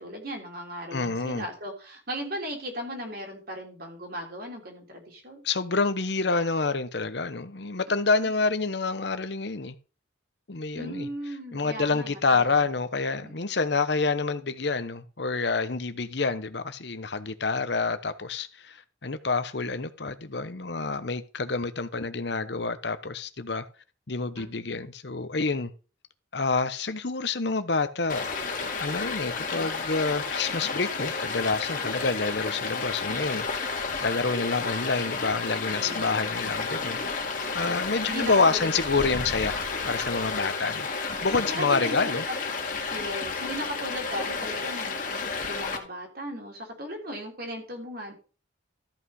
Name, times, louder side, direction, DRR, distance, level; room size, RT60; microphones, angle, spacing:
voice 1, 0.0-5.4 10.7-12.6 13.2-13.4 24.3-24.8 35.7-36.1 38.1-38.7 41.5-42.4 42.9-48.1, equal, 50° right, 3.4 m, -37 dB
voice 2, 0.9-1.5 5.4-9.7 10.5-11.1 11.5-23.6 24.1-25.7 26.3-28.2 28.8-33.5 34.0-37.0 37.5-42.2, left 4 dB, 60° left, 0.9 m, -28 dB
Stream, 28.1-45.8, left 4 dB, 45° left, 2.1 m, -31 dB
13.5 x 5.6 x 5.5 m
head